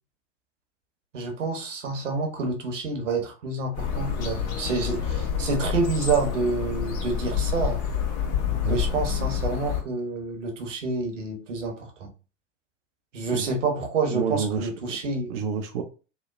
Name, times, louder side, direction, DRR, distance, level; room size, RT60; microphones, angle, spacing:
voice 1, 1.1-7.8 8.7-12.1 13.1-15.3, right 3 dB, 75° right, 0.8 m, -28 dB
sound 1, 3.7-9.8, left 7 dB, 45° left, 1.0 m, -28 dB
voice 2, 14.1-14.7 15.3-15.8, right 6 dB, 50° right, 0.4 m, -28 dB
2.9 x 2.0 x 2.4 m
figure-of-eight pair, 85°, 37 cm